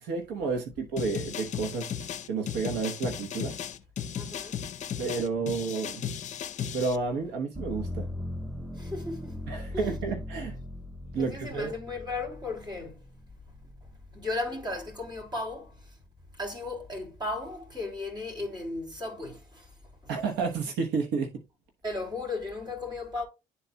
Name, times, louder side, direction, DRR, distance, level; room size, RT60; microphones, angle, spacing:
voice 1, 0.0-1.9 2.3-3.5 5.0-6.1 6.7-8.1 9.5-10.6 11.1-11.7 20.1-21.4, right 4 dB, 85° right, 1.0 m, -31 dB
sound 1, 1.0-7.0, left 8 dB, 45° left, 0.6 m, -35 dB
voice 2, 4.1-4.6 8.8-10.0 11.1-13.0 14.1-16.0 16.4-19.7 20.0-20.1 21.8-23.2, left 2 dB, 25° right, 3.0 m, -36 dB
sound 2, 7.6-15.4 15.9-16.7, left 1 dB, 5° right, 0.6 m, -40 dB
11.0 x 4.0 x 2.2 m
cardioid pair, 110°, 17 cm